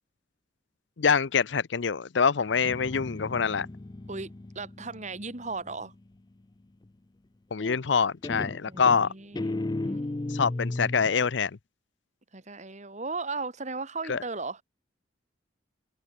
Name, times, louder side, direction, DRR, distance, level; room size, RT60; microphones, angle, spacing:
voice 1, 1.0-3.7 7.5-9.1 10.3-11.5 14.1-14.2, left 6 dB, 70° left, 0.6 m, -25 dB
Guitar, 2.5-6.1 7.6-8.0 8.2-11.2, left 2 dB, 20° left, 0.4 m, -35 dB
voice 2, 4.1-5.9 8.6-10.4 12.3-14.6, right 3 dB, 40° right, 2.6 m, -37 dB
open air
head